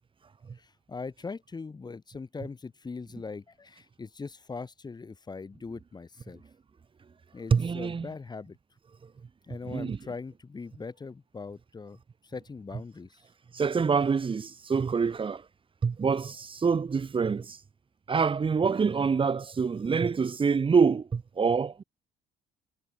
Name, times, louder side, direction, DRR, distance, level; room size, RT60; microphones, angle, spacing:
voice 1, 0.5-6.4 7.3-8.6 9.5-12.0 12.2-13.3, left 4 dB, 25° left, 4.8 m, -41 dB
voice 2, 7.5-8.1 9.7-10.0 13.5-15.5 15.8-17.6 18.1-21.8, right 5 dB, 30° right, 4.0 m, -26 dB
cardioid pair, 110°, 17 cm